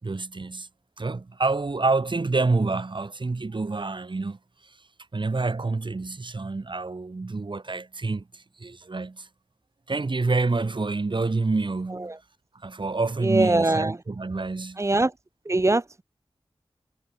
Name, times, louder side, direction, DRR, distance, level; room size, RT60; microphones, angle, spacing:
voice 1, 0.0-0.7 1.0-4.4 5.1-9.3 9.9-12.1 12.6-14.8, right 3 dB, 55° right, 4.8 m, -27 dB
voice 2, 13.2-14.0 14.8-15.1 15.4-15.8, right 2 dB, 30° right, 1.2 m, -22 dB
wide cardioid pair, 75°, 10 cm